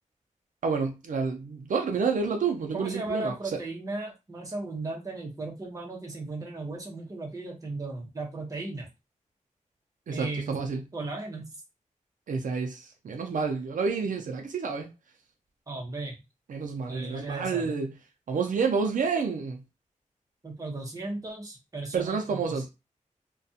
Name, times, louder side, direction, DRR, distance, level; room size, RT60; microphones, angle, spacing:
voice 1, 0.6-3.3 10.1-10.8 12.3-14.9 16.5-18.0 18.3-19.6 21.9-22.7, right 5 dB, 80° right, 0.5 m, -29 dB
voice 2, 2.7-8.9 10.1-10.5 10.9-11.5 15.7-16.2 16.9-17.8 20.4-22.6, right 2 dB, 25° right, 0.8 m, -36 dB
2.3 x 2.2 x 2.7 m
wide cardioid pair, 150°, 13 cm